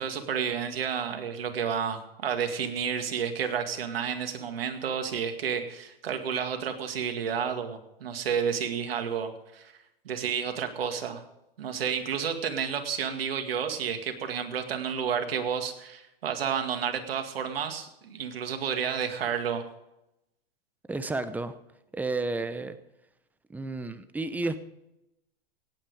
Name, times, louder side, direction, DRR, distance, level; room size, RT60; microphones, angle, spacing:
voice 1, 0.0-9.7 10.0-11.2 11.6-19.6, right 7 dB, 80° right, 6 dB, 2.2 m, -31 dB
voice 2, 20.9-21.6 21.9-22.8 23.5-24.6, right 3 dB, 5° right, 12 dB, 0.8 m, -31 dB
17.5 x 9.0 x 4.9 m, 0.88 s
hypercardioid pair, 125°, 29 cm